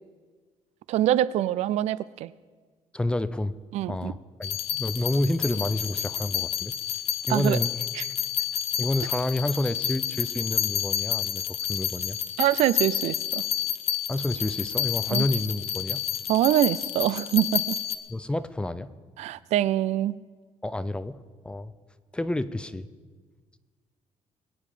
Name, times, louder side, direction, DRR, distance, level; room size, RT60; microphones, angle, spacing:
voice 1, 0.9-2.3 3.7-4.1 7.3-7.6 7.9-8.0 12.4-13.5 15.1-15.2 16.3-17.8 19.2-20.2, right 13 dB, 75° right, 19 dB, 0.4 m, -24 dB
voice 2, 2.9-3.5 3.9-6.7 7.3-7.7 8.8-12.2 14.1-16.0 18.1-18.9 20.6-21.2 21.4-21.7 22.1-22.9, left 1 dB, 10° left, 14 dB, 0.5 m, -29 dB
sound 1, 4.4-18.0, left 11 dB, 65° left, 1.1 m, -30 dB
22.5 x 9.5 x 5.0 m, 1.5 s
cardioid pair, 140°, 11 cm